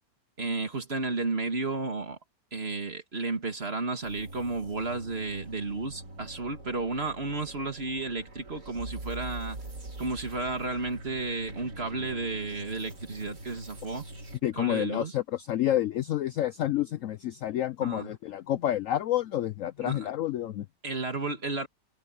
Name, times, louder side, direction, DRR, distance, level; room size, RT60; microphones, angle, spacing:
voice 1, 0.4-2.2 2.5-9.6 10.0-14.0 14.5-15.1 17.8-18.1 19.8-20.1 20.8-21.7, right 3 dB, 35° right, 2.4 m, -32 dB
sound 1, 4.0-14.4, right 2 dB, 65° right, 4.2 m, -43 dB
voice 2, 14.4-20.7, left 12 dB, 70° left, 0.8 m, -29 dB
omnidirectional pair, 1.8 m